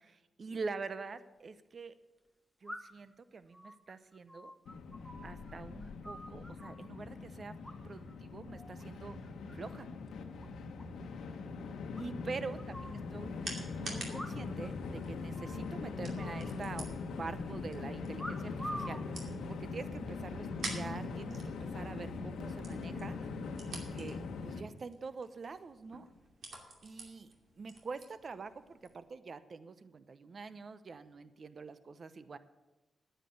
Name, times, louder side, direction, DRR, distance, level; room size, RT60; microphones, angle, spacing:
voice 1, 0.0-2.0 2.6-4.5 5.2-7.6 7.8-9.2 9.5-9.9 12.0-23.3 23.7-26.1 26.8-32.4, right 4 dB, 55° right, 13 dB, 0.8 m, -45 dB
sound 1, 2.7-3.1 3.5-5.6 5.8-6.9 7.6-8.2 8.5-8.8 9.2-9.8 10.1-10.2 10.4-10.5 10.8-10.9 11.2-11.3 12.0-13.0 14.1-14.7 14.9-15.0 15.4-15.7 16.2-17.1 18.2-19.0 19.8-20.1, equal, ahead, 1.6 m, -46 dB
Train, 4.7-24.6, left 4 dB, 85° left, 1.1 m, -41 dB
sound 2, 12.6-29.0, right 3 dB, 70° right, 2.5 m, -50 dB
10.0 x 9.0 x 7.9 m, 1.1 s
supercardioid pair, 50°, 0 cm